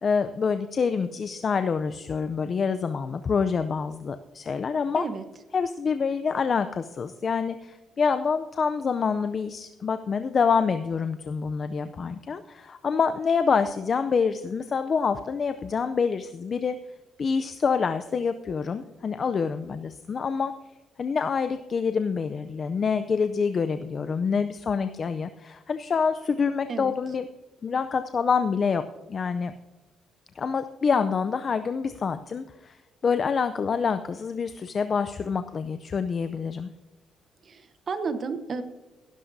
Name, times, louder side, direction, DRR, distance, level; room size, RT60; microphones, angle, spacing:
voice 1, 0.0-5.0 5.5-16.8 17.2-20.5 21.0-27.3 27.6-28.8 29.1-29.5 30.3-32.8 33.0-36.7, left 5 dB, 45° left, 10 dB, 0.5 m, -26 dB
voice 2, 37.4-38.6, right 4 dB, 45° right, 10 dB, 1.0 m, -32 dB
16.0 x 12.0 x 2.7 m, 1.2 s
cardioid pair, 90°, 0 cm